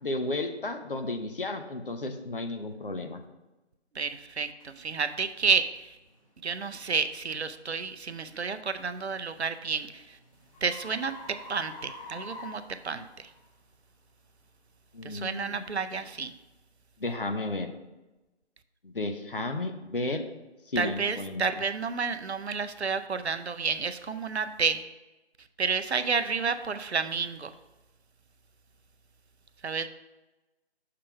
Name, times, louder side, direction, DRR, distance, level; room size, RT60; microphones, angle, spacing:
voice 1, 0.0-3.2 14.9-15.6 17.0-17.7 18.8-20.2 20.7-21.4, left 2 dB, 55° left, 6 dB, 0.8 m, -33 dB
voice 2, 4.0-5.7 6.4-10.0 10.6-11.1 11.5-13.3 15.0-16.3 20.8-24.8 25.6-27.5 29.6-29.9, right 5 dB, 70° right, 10 dB, 0.6 m, -30 dB
sound 1, 4.6-4.7 5.3-5.5 6.1-6.3 8.9-13.4, left 2 dB, 30° left, 1.1 m, -46 dB
6.6 x 3.8 x 5.7 m, 1.1 s
figure-of-eight pair, 165°, 34 cm